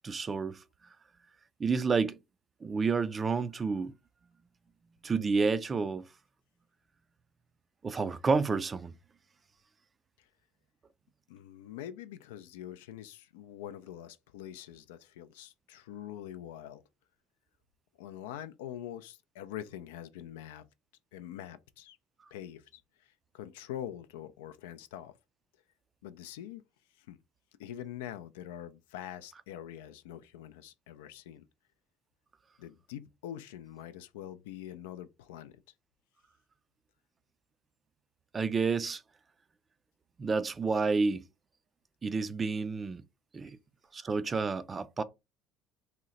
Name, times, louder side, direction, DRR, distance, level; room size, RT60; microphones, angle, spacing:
voice 1, 0.0-0.6 1.6-2.2 2.6-3.9 5.0-6.1 7.8-8.9 38.3-39.0 40.2-41.2 42.0-43.0 43.3-43.6 43.9-45.0, right 4 dB, 30° right, 0.3 m, -29 dB
voice 2, 11.3-16.8 18.0-20.7 21.1-22.0 22.3-25.2 26.0-26.6 26.9-27.2 27.6-31.4 32.6-35.6, left 11 dB, 90° left, 0.3 m, -44 dB
2.8 x 2.1 x 3.7 m
supercardioid pair, 85°, 0 cm